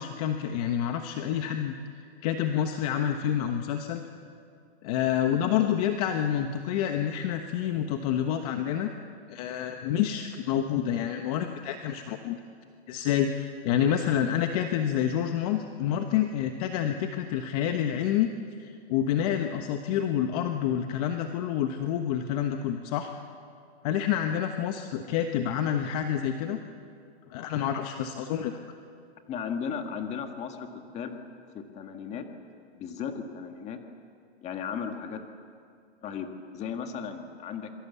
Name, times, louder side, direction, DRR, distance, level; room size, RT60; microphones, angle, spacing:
voice 1, 0.0-4.0 4.8-8.9 9.3-12.4 12.9-18.3 18.6-23.1 23.8-26.6 27.3-28.6, left 9 dB, 35° left, 6 dB, 1.2 m, -28 dB
voice 2, 29.3-31.2 31.5-32.3 32.7-33.8 34.4-35.2 36.0-37.7, left 7 dB, 20° left, 5 dB, 1.8 m, -36 dB
26.5 x 23.0 x 8.3 m, 2.3 s
hypercardioid pair, 155°, 33 cm